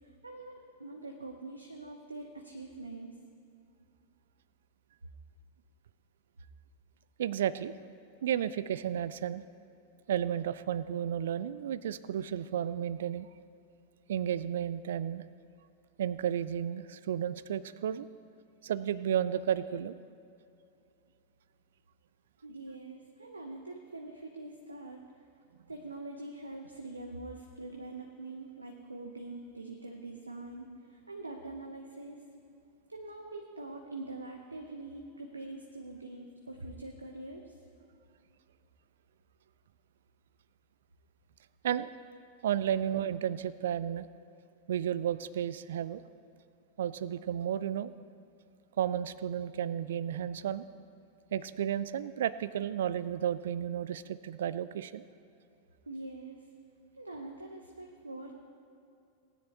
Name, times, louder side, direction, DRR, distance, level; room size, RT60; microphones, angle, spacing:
voice 1, 0.0-3.2 22.4-25.0 25.7-32.2 32.9-37.6 55.9-56.5 56.9-58.3, right 2 dB, 80° right, 2 dB, 0.8 m, -44 dB
voice 2, 7.2-7.7 8.2-9.4 10.1-13.3 14.1-15.2 16.0-18.1 18.6-20.0 41.6-41.9 42.4-44.1 44.7-46.0 46.8-47.9 48.8-50.6 51.3-55.1, right 10 dB, 60° right, 16 dB, 0.4 m, -32 dB
19.0 x 9.9 x 2.9 m, 2.6 s
figure-of-eight pair, 90°, 0 cm